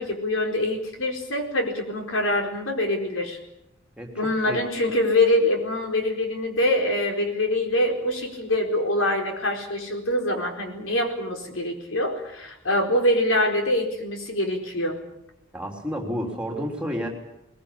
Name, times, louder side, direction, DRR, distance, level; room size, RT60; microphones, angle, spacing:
voice 1, 0.0-3.4 4.2-15.0, left 1 dB, 75° left, 3 dB, 4.5 m, -24 dB
voice 2, 4.0-4.6 15.5-17.1, equal, 5° right, 1 dB, 3.4 m, -31 dB
21.5 x 21.0 x 8.5 m, 0.85 s
head